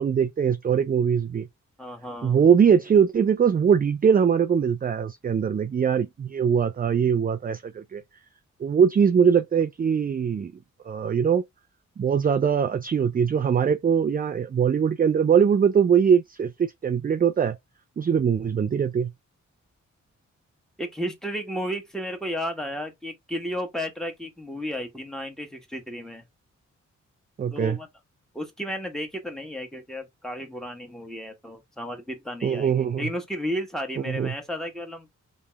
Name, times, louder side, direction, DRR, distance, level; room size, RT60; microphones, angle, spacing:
voice 1, 0.0-1.5 2.2-8.0 8.6-10.5 10.9-11.4 12.0-17.6 18.0-19.1 27.4-27.8 32.4-33.1 34.1-34.3, right 7 dB, 30° right, 0.4 m, -22 dB
voice 2, 1.8-2.4 20.8-26.2 27.5-27.9 28.3-35.1, equal, ahead, 1.6 m, -33 dB
3.3 x 3.1 x 3.4 m
cardioid pair, 55°, 31 cm